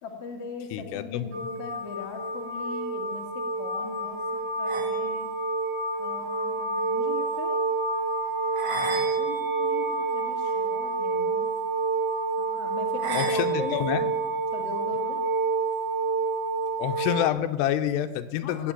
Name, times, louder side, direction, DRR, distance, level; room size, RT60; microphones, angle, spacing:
voice 1, 0.0-5.3 6.0-7.6 8.9-11.5 12.4-13.8 14.5-15.2 18.4-18.7, left 5 dB, 45° left, 2 dB, 2.2 m, -40 dB
voice 2, 0.7-1.3 13.1-14.1 16.8-18.7, left 11 dB, 80° left, 9 dB, 2.8 m, -27 dB
sound 1, 1.3-17.3, right 3 dB, 65° right, 3.9 m, -28 dB
17.0 x 8.2 x 9.2 m, 1.2 s
omnidirectional pair, 5.0 m